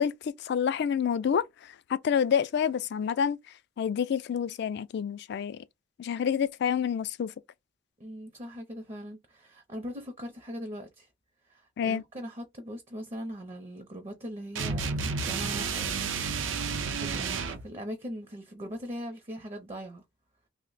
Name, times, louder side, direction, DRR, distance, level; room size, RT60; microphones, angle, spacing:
voice 1, 0.0-3.4 3.8-5.6 6.0-7.3 11.8-12.0, left 7 dB, 60° left, 0.3 m, -28 dB
voice 2, 8.0-11.1 11.4-16.6 16.8-20.0, equal, 30° right, 0.5 m, -40 dB
sound 1, 14.6-17.6, right 5 dB, 85° right, 0.5 m, -31 dB
2.8 x 2.0 x 3.8 m
head